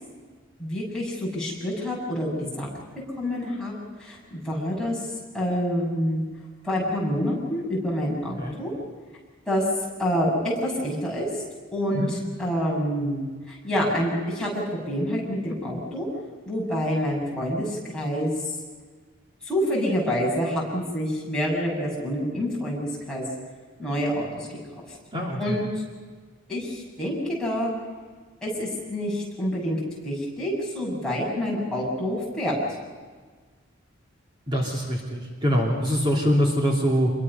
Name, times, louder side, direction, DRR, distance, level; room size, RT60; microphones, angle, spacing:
voice 1, 0.6-2.7 3.2-3.7 4.0-5.1 5.3-6.2 6.6-8.7 9.5-9.6 10.0-11.3 11.7-12.0 12.4-16.1 16.4-18.5 19.4-23.3 23.8-24.6 24.9-25.0 25.4-25.6 26.5-27.7 28.4-32.6, equal, 5° left, -5 dB, 6.8 m, -27 dB
voice 2, 25.1-25.6 34.5-37.1, equal, 25° right, -2 dB, 2.9 m, -24 dB
26.5 x 23.0 x 5.6 m, 1.5 s
head